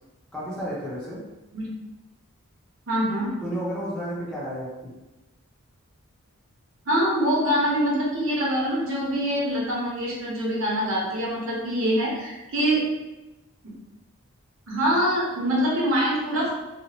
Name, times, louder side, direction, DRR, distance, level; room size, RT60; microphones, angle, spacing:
voice 1, 0.3-1.2 3.4-4.9, equal, 5° left, -8 dB, 0.6 m, -32 dB
voice 2, 2.9-3.3 6.9-12.8 14.7-16.5, equal, 60° right, -4 dB, 0.9 m, -24 dB
2.9 x 2.4 x 2.9 m, 1.0 s
head